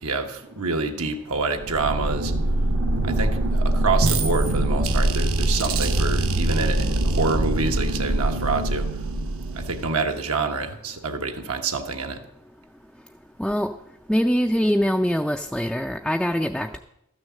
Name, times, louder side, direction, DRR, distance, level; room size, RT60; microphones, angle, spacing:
voice 1, 0.0-2.3 3.0-8.9 9.5-12.2, right 4 dB, 80° right, 4 dB, 1.3 m, -27 dB
sound 1, 1.6-10.1, right 1 dB, 65° right, 1.0 m, -23 dB
voice 2, 13.4-13.7 14.1-16.8, equal, ahead, 4 dB, 0.3 m, -23 dB
13.0 x 6.4 x 7.4 m, 0.83 s
head